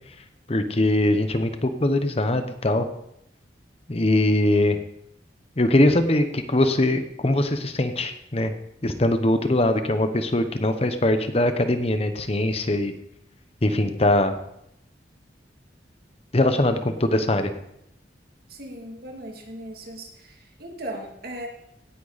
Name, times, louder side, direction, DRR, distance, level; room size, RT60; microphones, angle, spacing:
voice 1, 0.5-2.9 3.9-4.8 5.6-8.5 8.8-12.9 13.6-14.3 16.3-17.5, left 1 dB, 35° left, 9 dB, 1.0 m, -22 dB
voice 2, 18.5-21.5, right 1 dB, 55° right, 1 dB, 2.7 m, -38 dB
17.5 x 10.0 x 4.1 m, 0.77 s
head